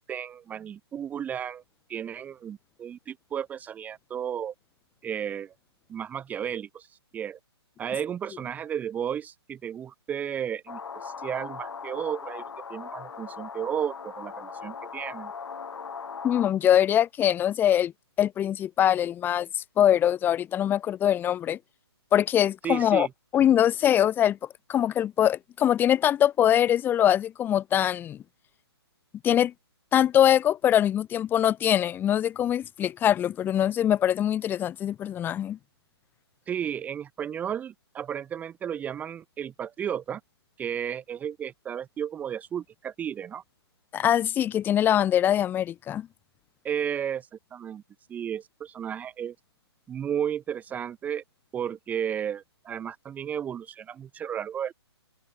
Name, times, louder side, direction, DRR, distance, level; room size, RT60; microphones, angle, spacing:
voice 1, 0.0-1.6 1.9-4.5 5.0-5.5 5.9-7.4 7.8-12.4 12.7-15.3 22.6-23.1 36.5-40.2 40.6-43.4 46.6-47.8 48.1-49.3 49.9-51.2 51.5-54.7, right 9 dB, 10° right, 1.1 m, -33 dB
sound 1, 10.7-16.5, left 5 dB, 80° left, 2.2 m, -39 dB
voice 2, 16.2-17.9 18.2-21.6 22.1-23.1 23.3-24.4 24.7-28.2 29.2-29.5 29.9-35.6 43.9-46.1, left 10 dB, 15° left, 1.9 m, -23 dB
hypercardioid pair, 150°, 14 cm